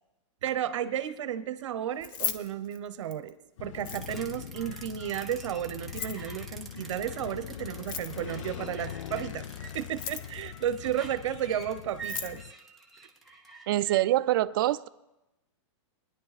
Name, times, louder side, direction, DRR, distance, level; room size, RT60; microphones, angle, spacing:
voice 1, 0.4-3.3 3.6-9.5 9.7-12.4, right 10 dB, 70° right, 0.8 m, -33 dB
Keys jangling, 1.9-3.3 3.7-4.4 5.8-6.3 7.7-8.4 9.8-10.4 11.6-11.7 11.9-12.4, left 8 dB, 40° left, 0.8 m, -36 dB
sound 1, 3.6-12.5, left 10 dB, 75° left, 0.4 m, -42 dB
sound 2, 3.9-14.0, right 4 dB, ahead, 0.7 m, -47 dB
voice 2, 13.7-14.9, right 15 dB, 45° right, 0.4 m, -25 dB
21.0 x 10.5 x 4.1 m
supercardioid pair, 170°, 16 cm